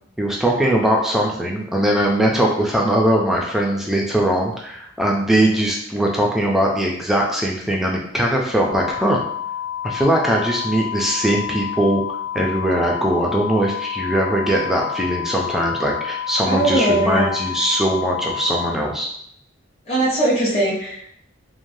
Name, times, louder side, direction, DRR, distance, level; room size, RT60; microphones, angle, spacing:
voice 1, 0.2-9.2 9.8-19.1, right 1 dB, ahead, -2 dB, 0.3 m, -20 dB
sound 1, 8.7-18.7, left 10 dB, 60° left, 0.8 m, -29 dB
voice 2, 16.5-17.3 19.8-21.1, right 1 dB, 30° left, -8 dB, 0.9 m, -20 dB
3.1 x 2.1 x 2.6 m, 0.71 s
head